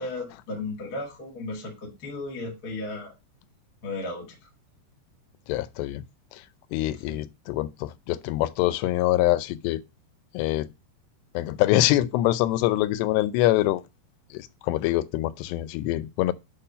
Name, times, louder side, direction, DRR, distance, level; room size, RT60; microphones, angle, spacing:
voice 1, 0.0-3.1 3.8-4.3 7.1-7.2, left 2 dB, 45° left, 1.2 m, -35 dB
voice 2, 5.5-6.0 6.7-9.8 10.3-10.7 11.3-13.8 14.3-16.3, left 15 dB, 85° left, 2.7 m, -24 dB
8.7 x 3.6 x 5.3 m
omnidirectional pair, 4.9 m